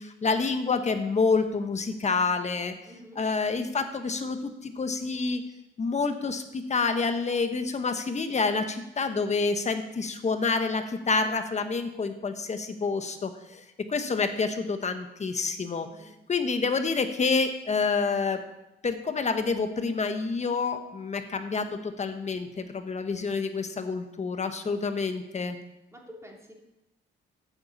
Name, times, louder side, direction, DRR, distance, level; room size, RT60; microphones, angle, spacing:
voice 1, 0.0-2.7 3.1-5.4 5.8-13.6 13.9-15.9 16.3-18.4 18.8-25.6, left 4 dB, 35° left, 8 dB, 1.3 m, -28 dB
voice 2, 2.9-3.2 15.8-16.1 25.9-26.5, equal, 15° right, -1 dB, 3.1 m, -48 dB
9.6 x 6.8 x 8.5 m, 0.92 s
cardioid pair, 90°, 20 cm